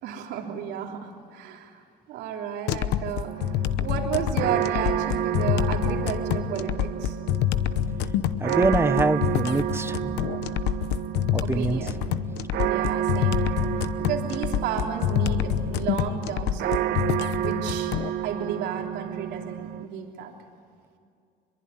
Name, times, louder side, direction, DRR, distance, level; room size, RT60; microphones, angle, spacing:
voice 1, 0.0-7.2 11.4-12.0 12.6-17.0 17.4-17.9 18.2-20.4, right 7 dB, 90° right, 1 dB, 3.2 m, -33 dB
sound 1, 2.7-18.1, left 11 dB, 85° left, 0.9 m, -27 dB
sound 2, 3.3-19.9, right 10 dB, 70° right, 1.2 m, -30 dB
voice 2, 8.4-10.3 11.3-11.8, right 2 dB, 15° right, 12 dB, 0.9 m, -25 dB
24.0 x 22.5 x 9.9 m, 2.3 s
cardioid pair, 110°, 17 cm